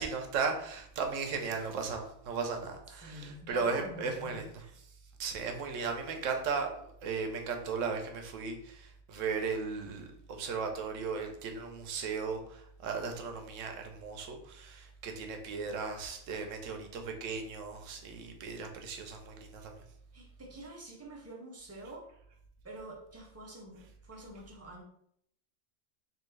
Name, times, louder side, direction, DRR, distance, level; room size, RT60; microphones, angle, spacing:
voice 1, 0.0-4.6 5.2-19.8, right 5 dB, 90° right, 4 dB, 1.0 m, -36 dB
voice 2, 3.0-4.7 20.1-22.1 22.6-24.8, right 1 dB, 20° right, -1 dB, 0.4 m, -47 dB
3.5 x 2.7 x 3.1 m, 0.69 s
omnidirectional pair, 1.3 m